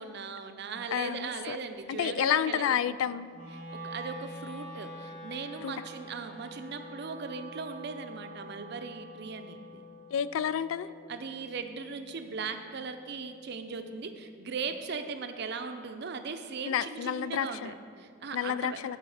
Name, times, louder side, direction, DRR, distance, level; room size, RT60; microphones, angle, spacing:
voice 1, 0.0-2.9 3.7-9.8 11.1-18.8, right 5 dB, 55° right, 8 dB, 0.5 m, -38 dB
voice 2, 0.9-1.6 1.9-3.3 5.6-5.7 10.1-10.9 16.6-17.7 18.3-19.0, left 9 dB, 80° left, 16 dB, 0.3 m, -30 dB
Wind instrument woodwind instrument, 3.3-13.5, right 1 dB, 40° left, 1.4 m, -46 dB
13.0 x 4.6 x 4.8 m, 2.2 s
head